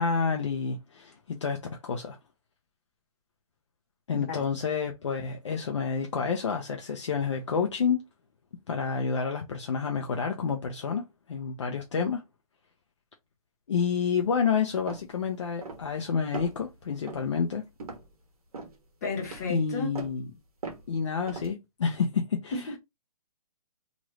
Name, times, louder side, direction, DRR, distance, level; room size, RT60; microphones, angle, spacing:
voice 1, 0.0-2.2 4.1-8.0 8.7-12.2 13.7-17.6 19.5-20.3 20.9-22.8, left 6 dB, 50° left, 0.5 m, -29 dB
sound 1, 14.9-15.1 15.6-16.0 16.3-16.7 17.1-17.3 17.8-18.1 18.5-18.8 19.2-19.5 19.9-20.2 20.6-20.9 21.3-21.5, right 3 dB, 70° right, 1.2 m, -39 dB
voice 2, 19.0-20.0, left 4 dB, 25° left, 1.0 m, -33 dB
3.0 x 2.5 x 3.1 m
hypercardioid pair, 175°, 20 cm